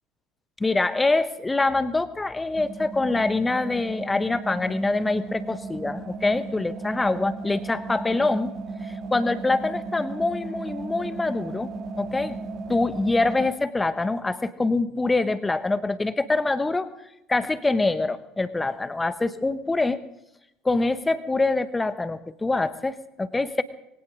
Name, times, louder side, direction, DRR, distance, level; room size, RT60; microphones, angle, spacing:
voice 1, 0.6-8.5 8.8-12.4 12.7-16.9 17.3-20.0 20.6-23.6, left 3 dB, 15° left, 14 dB, 1.1 m, -25 dB
sound 1, 2.5-13.5, right 3 dB, 40° right, 1.9 m, -35 dB
21.0 x 18.0 x 3.8 m, 0.87 s
figure-of-eight pair, 65°, 0 cm